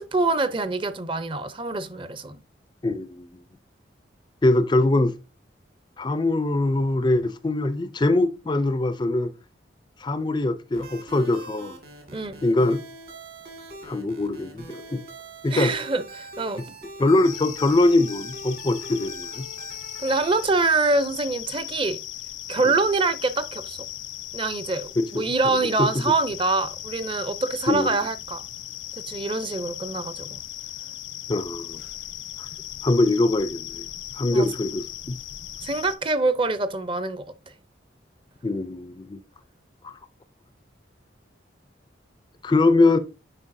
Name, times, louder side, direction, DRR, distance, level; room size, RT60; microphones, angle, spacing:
voice 1, 0.0-2.4 12.1-12.4 15.5-16.6 20.0-22.0 22.5-23.8 24.3-28.4 29.1-30.4 34.3-34.5 35.6-37.2, right 3 dB, 25° right, 0.5 m, -25 dB
voice 2, 2.8-3.3 4.4-5.1 6.0-9.3 10.0-11.8 12.4-12.8 13.8-15.0 15.4-15.7 17.0-19.4 25.0-25.9 27.7-27.9 31.3-31.8 32.4-32.5 32.8-33.8 34.2-35.2 38.4-39.2 39.8-39.9 42.4-43.0, left 2 dB, 25° left, 0.3 m, -22 dB
sound 1, 10.7-20.5, right 2 dB, 55° right, 1.8 m, -43 dB
sound 2, 17.2-36.0, left 13 dB, 85° left, 0.8 m, -38 dB
9.8 x 4.4 x 2.6 m
head